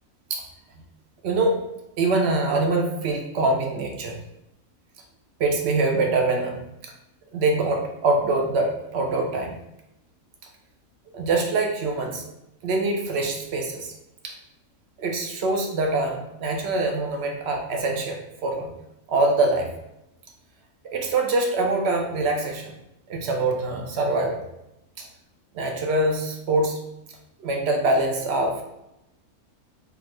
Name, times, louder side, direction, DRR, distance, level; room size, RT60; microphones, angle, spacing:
voice 1, 1.2-1.6 2.0-4.2 5.4-6.9 7.3-9.6 11.1-12.2 12.6-13.9 14.2-14.4 15.0-18.7 19.1-19.7 20.8-22.8 23.1-24.4 25.0-25.1 25.5-26.8 27.4-28.6, right 2 dB, 65° right, 2 dB, 0.6 m, -24 dB
3.6 x 2.3 x 3.0 m, 0.89 s
omnidirectional pair, 1.6 m